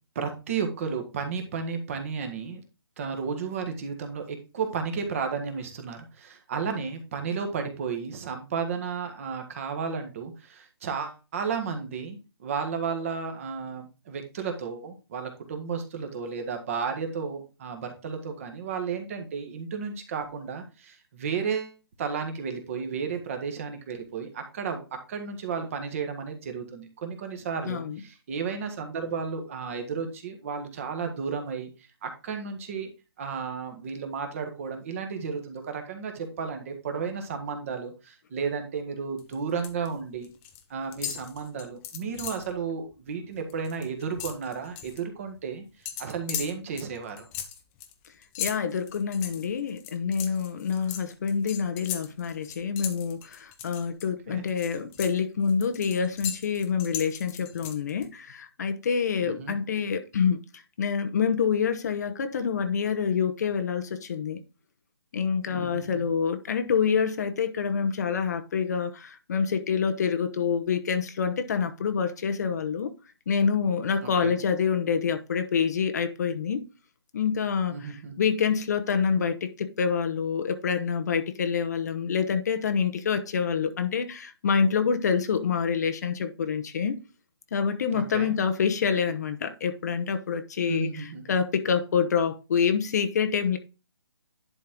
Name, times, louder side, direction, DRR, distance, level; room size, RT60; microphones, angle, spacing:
voice 1, 0.1-2.6 3.0-31.7 32.0-32.9 33.2-40.3 40.7-45.6 46.0-47.3 54.3-54.4 59.2-59.6 65.6-66.1 74.0-74.3 77.7-78.1 87.9-88.3 90.7-91.4, right 5 dB, 30° right, 1.6 m, -33 dB
voice 2, 27.6-28.0 48.4-60.4 60.8-64.4 65.1-72.9 73.3-76.7 77.1-87.0 87.5-93.6, left 6 dB, 40° left, 0.9 m, -27 dB
sound 1, 39.2-39.9 40.1-40.6 40.9-42.5 42.9-43.1 43.4-45.0 45.9-54.1 54.5-58.1, left 10 dB, 15° left, 0.7 m, -38 dB
11.0 x 4.3 x 3.7 m
hypercardioid pair, 160°, 14 cm